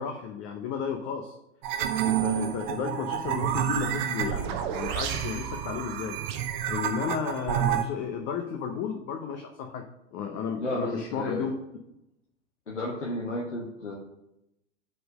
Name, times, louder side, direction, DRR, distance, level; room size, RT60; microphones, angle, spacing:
voice 1, 0.0-1.3 2.0-6.2 6.7-9.8 10.1-11.5, left 7 dB, 35° left, 4 dB, 0.8 m, -33 dB
sound 1, 1.6-7.8, right 10 dB, 40° right, 0.8 m, -29 dB
voice 2, 10.6-11.5 12.7-13.9, left 1 dB, 80° left, -2 dB, 1.3 m, -33 dB
6.6 x 4.4 x 6.4 m, 0.85 s
figure-of-eight pair, 95°, 35 cm